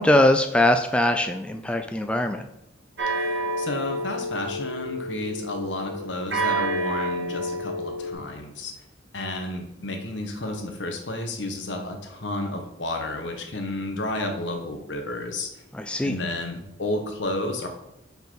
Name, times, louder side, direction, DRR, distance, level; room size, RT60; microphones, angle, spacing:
voice 1, 0.0-2.5 15.7-16.2, left 1 dB, 5° left, 6 dB, 0.3 m, -21 dB
sound 1, 3.0-8.1, right 1 dB, 70° right, 1.0 m, -29 dB
voice 2, 3.1-8.7 9.1-15.5 16.0-17.7, left 2 dB, 75° left, 4 dB, 1.2 m, -31 dB
5.3 x 4.5 x 4.6 m, 0.85 s
head